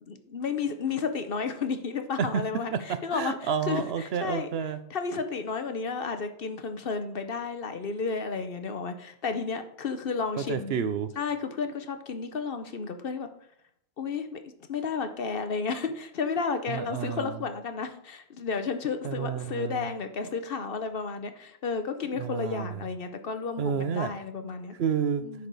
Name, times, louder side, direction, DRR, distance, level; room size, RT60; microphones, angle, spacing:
voice 1, 0.0-4.5 4.9-10.8 11.2-13.3 14.0-14.4 14.7-24.8 25.2-25.5, left 5 dB, 60° left, 8 dB, 1.0 m, -32 dB
voice 2, 3.1-4.8 10.4-11.1 16.7-17.4 19.0-19.9 22.2-22.8 23.6-24.1 24.8-25.2, right 7 dB, 70° right, 11 dB, 0.9 m, -30 dB
9.9 x 6.4 x 4.0 m, 0.71 s
omnidirectional pair, 1.1 m